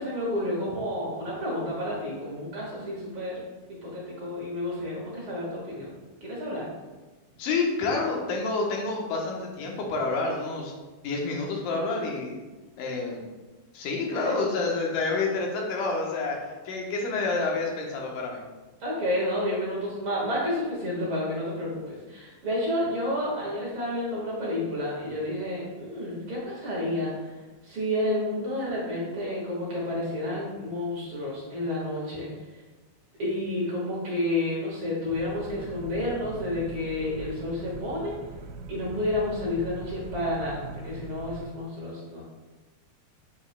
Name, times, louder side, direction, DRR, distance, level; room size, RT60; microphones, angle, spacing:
voice 1, 0.0-3.4 3.8-5.9 6.2-6.6 14.1-14.4 18.8-27.3 27.6-32.3 33.2-38.1 38.7-42.2, left 1 dB, 45° right, -5 dB, 1.9 m, -30 dB
voice 2, 7.4-10.7 11.0-12.4 12.8-13.2 13.7-16.4 16.7-18.4, left 3 dB, 70° left, -1 dB, 2.5 m, -28 dB
sound 1, 35.1-41.4, right 3 dB, 90° right, 1.7 m, -41 dB
8.1 x 6.3 x 2.2 m, 1.2 s
omnidirectional pair, 4.1 m